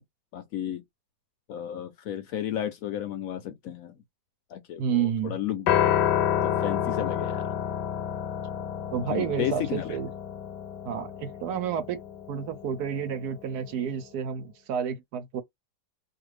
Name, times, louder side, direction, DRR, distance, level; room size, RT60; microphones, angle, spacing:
voice 1, 0.3-0.8 1.5-3.9 4.5-5.8 6.4-7.5 9.1-10.0, left 10 dB, 70° left, 0.9 m, -33 dB
voice 2, 4.8-5.4 8.9-10.1 10.8-12.0 12.3-15.4, right 8 dB, 75° right, 1.1 m, -30 dB
Piano, 5.7-13.9, left 10 dB, 90° left, 1.2 m, -29 dB
2.7 x 2.5 x 3.1 m
omnidirectional pair, 1.8 m